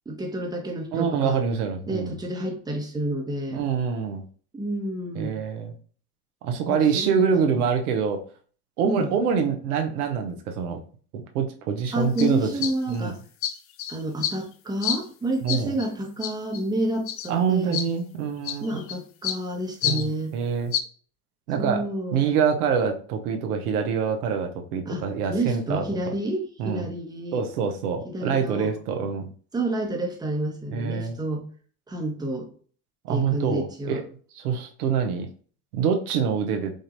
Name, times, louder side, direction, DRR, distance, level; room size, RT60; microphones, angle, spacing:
voice 1, 0.1-1.4 1.9-3.7 4.5-5.4 6.6-7.6 8.8-9.1 11.9-13.2 13.9-17.8 18.6-20.3 21.6-22.2 24.9-27.4 28.0-28.7 29.5-31.5 31.9-32.5 33.1-34.0, right 1 dB, 10° right, 1 dB, 1.0 m, -29 dB
voice 2, 0.9-2.1 3.5-4.2 5.1-5.7 6.4-8.2 8.8-10.8 11.1-12.5 12.9-13.1 15.4-15.7 17.3-18.8 19.8-20.7 21.5-25.8 26.6-26.9 27.3-29.3 30.7-31.2 33.0-34.0 34.4-35.3 35.7-36.7, right 6 dB, 75° right, 4 dB, 0.9 m, -25 dB
sound 1, 11.9-12.0 12.2-12.3 12.6-13.0 13.4-14.4 14.8-15.0 15.5-15.9 16.2-16.6 17.1-17.3 17.7-17.9 18.4-19.0 19.2-19.4 19.8-20.1 20.7-20.8, left 9 dB, 30° left, 0.4 m, -28 dB
5.0 x 2.7 x 2.6 m, 0.43 s
hypercardioid pair, 80°, 45 cm